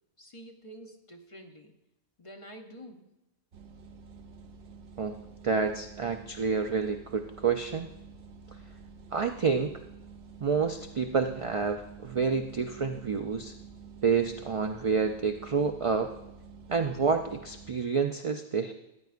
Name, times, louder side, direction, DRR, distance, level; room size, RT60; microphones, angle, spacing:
voice 1, 0.2-1.7 2.2-3.1, right 1 dB, 35° left, 4 dB, 0.7 m, -48 dB
sound 1, 3.5-17.7, right 5 dB, 90° right, 1.1 m, -49 dB
voice 2, 5.4-7.9 9.1-9.8 10.4-13.5 14.0-16.1 16.7-18.7, right 5 dB, 60° right, 6 dB, 0.3 m, -28 dB
13.5 x 9.3 x 2.5 m, 0.92 s
omnidirectional pair, 1.1 m